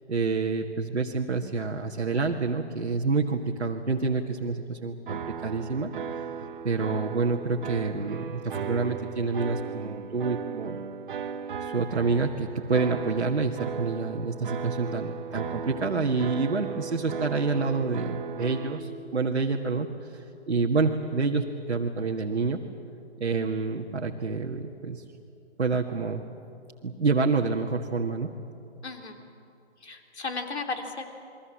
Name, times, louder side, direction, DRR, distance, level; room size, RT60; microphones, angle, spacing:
voice 1, 0.1-6.2 6.6-10.8 11.6-22.6 23.2-25.0 25.6-26.3 26.8-28.3, right 4 dB, 85° right, 0 dB, 1.8 m, -28 dB
sound 1, 5.1-18.8, right 7 dB, 45° right, 1.4 m, -36 dB
voice 2, 28.8-29.2 29.8-31.0, left 4 dB, 70° left, 4 dB, 3.5 m, -34 dB
28.0 x 22.5 x 7.5 m, 2.6 s
figure-of-eight pair, 150°, 34 cm